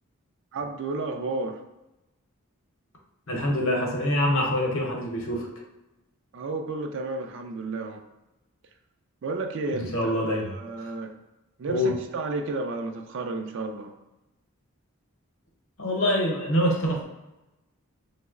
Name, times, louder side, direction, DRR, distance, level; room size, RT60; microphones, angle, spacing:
voice 1, 0.5-1.6 6.3-8.0 9.2-11.1 11.6-13.9, right 3 dB, 55° right, 5 dB, 0.3 m, -32 dB
voice 2, 3.3-5.5 9.7-10.5 10.8-10.9 11.7-11.9 15.8-17.0, left 1 dB, 65° left, 0 dB, 0.7 m, -25 dB
3.0 x 2.0 x 3.6 m, 0.99 s
head